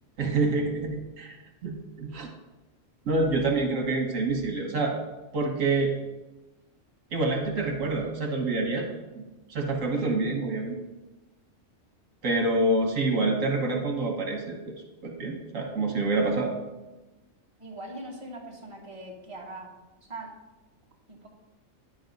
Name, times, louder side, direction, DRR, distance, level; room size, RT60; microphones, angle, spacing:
voice 1, 0.2-1.4 1.6-2.3 3.1-4.9 5.3-5.9 7.1-9.2 9.5-10.8 12.2-14.7 15.0-16.5, right 2 dB, 80° right, 1 dB, 1.5 m, -27 dB
voice 2, 3.1-3.5 17.6-19.7 20.0-20.3 21.1-21.3, right 2 dB, 25° right, -2 dB, 1.4 m, -41 dB
9.7 x 3.9 x 5.2 m, 1.1 s
omnidirectional pair, 1.3 m